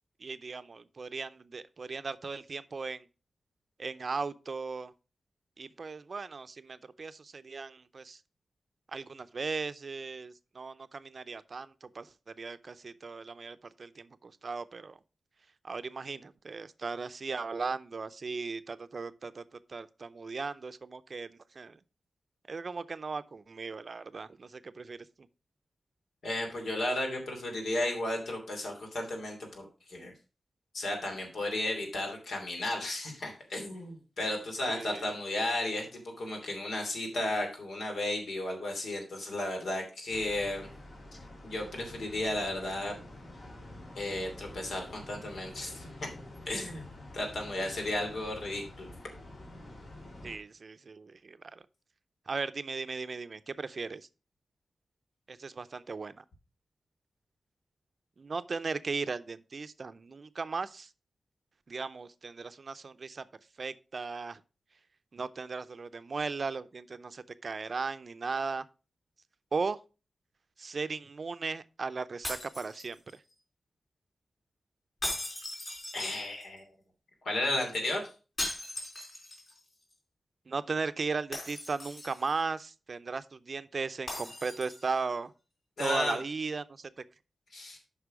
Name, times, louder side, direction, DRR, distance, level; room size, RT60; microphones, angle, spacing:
voice 1, 0.2-3.0 3.8-4.9 5.6-8.2 8.9-15.0 15.6-19.4 19.7-21.8 22.5-25.0 34.7-35.1 50.2-51.6 52.3-54.1 55.3-56.2 58.2-60.9 61.7-63.3 63.6-64.4 65.1-68.6 69.5-69.8 70.6-73.0 80.5-85.3 85.8-86.9, right 4 dB, 50° right, 0.5 m, -37 dB
voice 2, 26.2-30.1 30.7-40.7 41.4-42.9 43.9-46.1 46.5-46.8 47.1-48.9 75.9-76.7 77.2-78.1 85.8-86.2 87.5-87.8, left 1 dB, 85° left, 2.9 m, -34 dB
sound 1, 40.1-50.4, left 1 dB, 65° left, 3.2 m, -48 dB
sound 2, 72.2-73.3 75.0-76.6 78.4-79.6 79.9-80.0 81.3-82.4 84.1-85.0, left 1 dB, 45° left, 4.3 m, -39 dB
8.2 x 5.6 x 4.9 m
wide cardioid pair, 110°, 0 cm